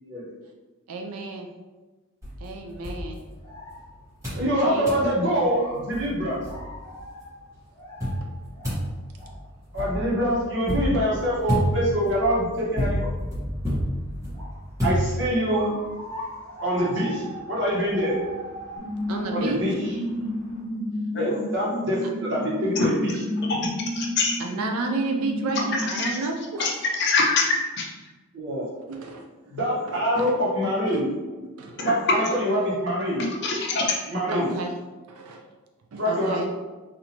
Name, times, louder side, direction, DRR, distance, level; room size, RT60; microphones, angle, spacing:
voice 1, 0.9-1.5 2.4-3.2 4.3-5.5 8.2-8.3 19.1-19.6 24.4-26.7 28.9-29.2 29.9-30.3 30.9-31.0 31.6-31.9 34.3-34.7 35.1-35.4 35.9-36.5, right 3 dB, 80° right, 3 dB, 0.4 m, -32 dB
sound 1, 2.2-3.8 4.2-4.5 4.9-5.1 5.6-5.7 5.9-7.0 8.0-15.6, equal, 15° right, 1.1 m, -29 dB
sound 2, 3.2-20.6, equal, 10° left, 1.4 m, -43 dB
voice 2, 4.4-6.4 9.7-13.1 14.8-15.7 16.6-17.2 17.5-18.1 19.3-19.7 21.1-23.1 28.3-28.7 29.5-31.1 31.8-33.2 34.1-34.5 36.0-36.5, equal, 55° right, -6 dB, 1.2 m, -25 dB
sound 3, 18.8-26.1, left 1 dB, 70° left, 1.2 m, -31 dB
voice 3, 23.5-24.4 25.9-26.2 26.6-27.9 31.8-31.9 33.4-34.0, left 3 dB, 50° left, 0 dB, 0.6 m, -25 dB
4.2 x 2.6 x 2.8 m, 1.2 s
head